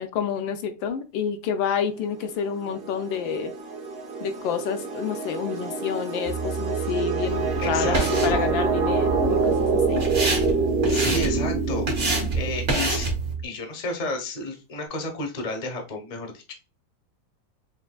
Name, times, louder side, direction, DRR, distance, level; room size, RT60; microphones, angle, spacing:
voice 1, 0.0-3.5 4.2-10.0 12.0-12.3, left 7 dB, 90° left, 1.4 m, -29 dB
sound 1, 2.3-12.8, right 4 dB, 60° right, 0.6 m, -27 dB
sound 2, 6.3-13.5, right 6 dB, 90° right, 1.3 m, -32 dB
sound 3, 7.3-13.3, right 3 dB, 45° right, 1.4 m, -29 dB
voice 2, 7.6-8.4 10.9-11.9 12.3-13.1 13.4-16.5, left 2 dB, 35° left, 0.6 m, -31 dB
5.7 x 2.7 x 2.3 m
omnidirectional pair, 2.0 m